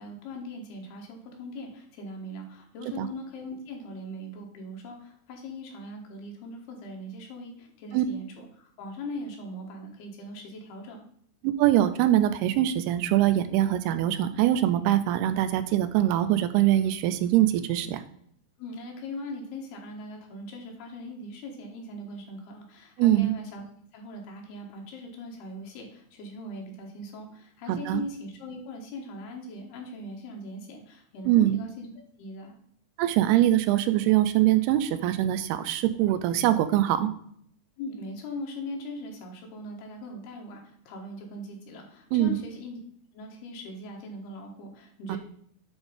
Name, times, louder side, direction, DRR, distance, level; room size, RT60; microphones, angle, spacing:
voice 1, 0.0-11.0 18.6-23.6 23.9-31.9 32.2-32.6 37.8-42.8 43.1-45.2, left 1 dB, 75° left, 1 dB, 3.5 m, -40 dB
voice 2, 11.4-18.0 23.0-23.3 27.7-28.0 31.3-31.6 33.0-37.1 42.1-42.4 45.1-45.2, right 13 dB, 85° right, 12 dB, 2.6 m, -23 dB
8.9 x 4.0 x 5.1 m, 0.64 s
omnidirectional pair, 4.6 m